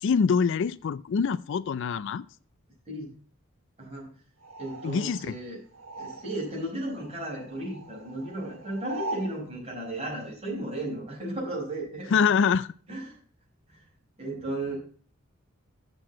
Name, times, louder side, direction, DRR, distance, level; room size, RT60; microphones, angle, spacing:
voice 1, 0.0-2.3 4.8-5.4 12.1-12.7, left 6 dB, 60° left, 0.4 m, -25 dB
voice 2, 3.8-4.1 4.6-5.6 6.0-12.2 12.9-13.2 13.7-13.8 14.2-14.8, right 1 dB, 30° right, 5.2 m, -35 dB
sound 1, 4.4-6.6 6.9-9.4, right 2 dB, 75° right, 1.6 m, -41 dB
7.7 x 6.7 x 7.3 m
head